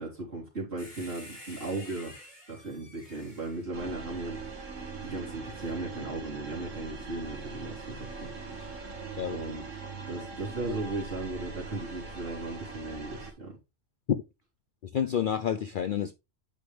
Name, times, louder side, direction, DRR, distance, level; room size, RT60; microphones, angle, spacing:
voice 1, 0.0-2.1 2.5-4.4 5.0-8.3 8.5-8.9 9.3-9.6 10.1-13.5, right 2 dB, 55° right, 3.5 m, -37 dB
sound 1, 0.8-4.6 5.6-5.7, left 1 dB, 35° left, 3.5 m, -50 dB
sound 2, 3.7-13.3, right 4 dB, 80° right, 2.0 m, -41 dB
voice 2, 14.8-16.1, left 8 dB, 60° left, 0.6 m, -29 dB
9.1 x 5.2 x 3.3 m
omnidirectional pair, 1.3 m